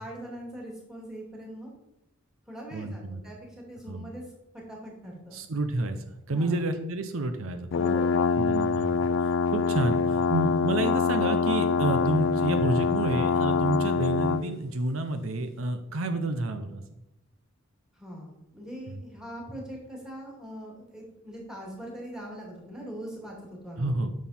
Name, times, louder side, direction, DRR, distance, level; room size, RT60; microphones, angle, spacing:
voice 1, 0.0-1.7 2.5-3.4 3.7-4.2 4.5-5.4 6.3-6.6 7.7-8.2 17.9-23.9, equal, 5° right, -2 dB, 2.4 m, -41 dB
voice 2, 2.7-3.2 3.9-4.1 5.3-6.0 6.3-7.7 8.4-16.8 18.9-19.0 23.8-24.1, right 2 dB, 70° right, 8 dB, 0.7 m, -29 dB
sound 1, 7.7-14.5, left 5 dB, 60° left, 0.3 m, -25 dB
9.3 x 6.3 x 4.2 m, 0.90 s
head